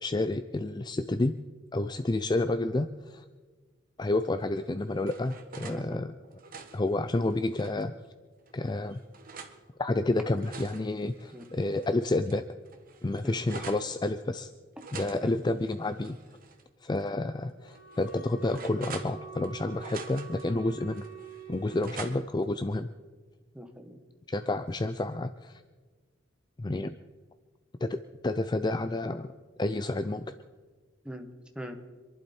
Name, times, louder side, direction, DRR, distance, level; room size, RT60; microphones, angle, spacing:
voice 1, 0.0-1.4 1.7-3.2 4.0-6.1 6.7-7.9 8.5-9.0 9.8-12.5 13.0-14.5 14.9-16.2 16.8-21.0 21.5-22.9 24.3-25.6 26.6-27.0 27.8-28.0 28.2-29.3 29.6-30.3, left 2 dB, 20° left, 11 dB, 0.4 m, -30 dB
sound 1, 4.5-5.8 6.2-7.9 8.5-9.6 10.1-11.9 12.3-12.4 12.6-13.9 14.8-16.6 16.9-17.1 17.7-19.5 19.8-20.5 20.9-22.4, right 5 dB, 45° right, 1.5 m, -46 dB
voice 2, 5.6-6.0 11.3-11.5 13.2-13.4 15.2-15.4 23.5-24.0 31.0-31.8, equal, 5° right, 4 dB, 1.4 m, -42 dB
Wind instrument woodwind instrument, 17.6-21.9, right 8 dB, 75° left, 4.6 m, -46 dB
26.5 x 11.5 x 4.4 m, 1.4 s
head